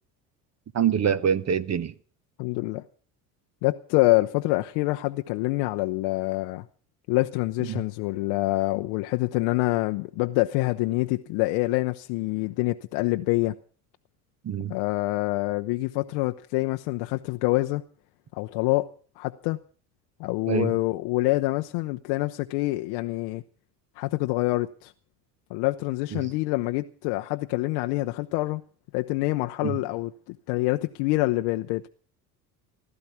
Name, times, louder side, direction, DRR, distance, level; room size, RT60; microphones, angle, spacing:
voice 1, 0.7-1.9 7.7-7.8 14.4-14.7 20.5-20.7 26.1-26.2 29.6-29.8, right 8 dB, 35° right, 1.1 m, -25 dB
voice 2, 2.4-2.8 3.6-6.7 7.1-13.5 14.7-17.8 18.3-18.9 19.2-19.6 20.2-23.4 24.0-24.9 25.5-28.6 28.9-31.9, left 20 dB, 65° left, 0.8 m, -26 dB
16.0 x 12.5 x 5.8 m
hypercardioid pair, 70°, 46 cm